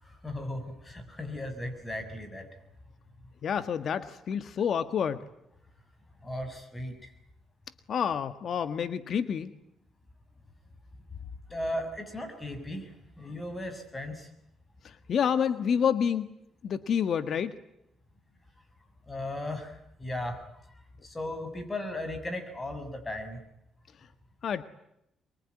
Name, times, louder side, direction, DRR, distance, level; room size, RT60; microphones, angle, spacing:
voice 1, 0.0-2.5 6.2-7.1 11.5-14.3 19.1-20.4 21.0-23.4, left 1 dB, 20° left, 7 dB, 6.9 m, -36 dB
voice 2, 3.4-5.3 7.9-9.5 14.8-16.3 16.6-17.6 24.4-24.6, left 7 dB, 60° left, 11 dB, 1.4 m, -28 dB
24.0 x 23.0 x 9.6 m, 0.80 s
cardioid pair, 90°, 0 cm